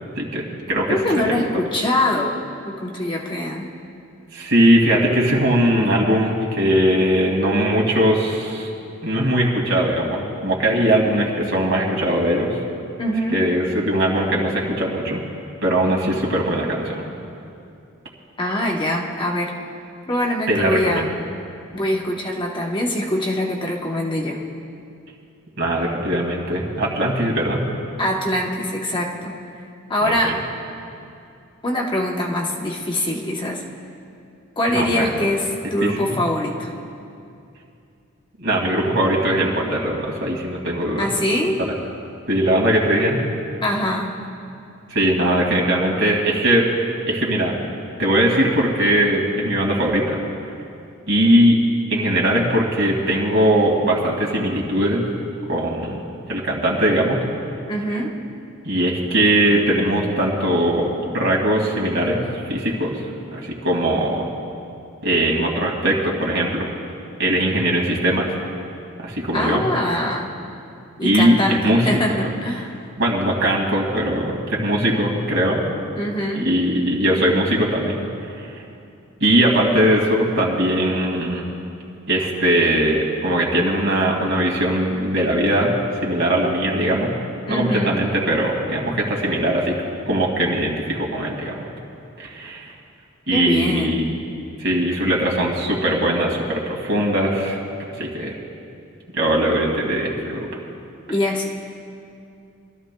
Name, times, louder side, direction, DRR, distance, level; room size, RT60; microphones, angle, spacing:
voice 1, 0.2-1.0 1.2-1.3 4.3-8.7 9.0-12.6 13.3-15.2 15.6-17.0 20.5-21.1 25.6-27.7 30.0-30.3 34.7-35.3 35.8-36.2 38.4-41.1 42.3-43.3 44.9-46.7 47.1-47.6 48.0-50.2 51.1-51.6 51.9-55.1 55.5-56.0 56.3-57.2 58.6-63.0 63.3-64.3 65.0-66.7 67.2-68.4 69.0-69.6 71.0-72.2 73.0-75.6 76.3-78.0 78.4-78.6 79.2-81.5 82.1-85.7 86.0-87.1 87.5-89.8 90.1-91.5 92.2-92.7 93.3-94.1 94.6-97.6 97.9-98.3 99.1-100.5, right 1 dB, 65° right, -1 dB, 2.3 m, -20 dB
voice 2, 0.9-2.4 2.6-3.7 13.0-13.4 18.4-19.6 20.1-21.1 21.7-24.4 28.0-29.4 29.9-30.4 31.6-33.6 34.6-36.7 41.0-41.6 43.6-44.2 57.7-58.1 69.3-70.3 71.0-72.8 75.9-76.5 87.5-88.0 93.3-94.0 101.1-101.5, left 1 dB, 25° left, -1 dB, 1.0 m, -23 dB
25.5 x 13.5 x 2.3 m, 2.5 s
head